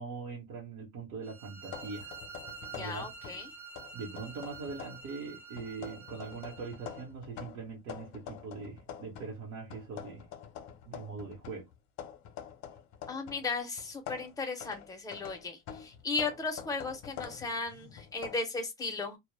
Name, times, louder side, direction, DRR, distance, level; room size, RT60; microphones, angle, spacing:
voice 1, 0.0-2.1 2.7-3.1 3.9-10.2 10.9-11.7, right 4 dB, 55° right, 0.9 m, -42 dB
sound 1, 1.2-7.1, right 5 dB, 30° right, 0.6 m, -48 dB
sound 2, 1.7-3.5 3.8-5.1 5.6-9.4 9.7-13.5 13.8-18.4, left 9 dB, 55° left, 0.6 m, -46 dB
voice 2, 2.8-3.5 13.1-19.2, left 4 dB, 10° left, 0.5 m, -36 dB
2.1 x 2.0 x 3.1 m
cardioid pair, 145°, 33 cm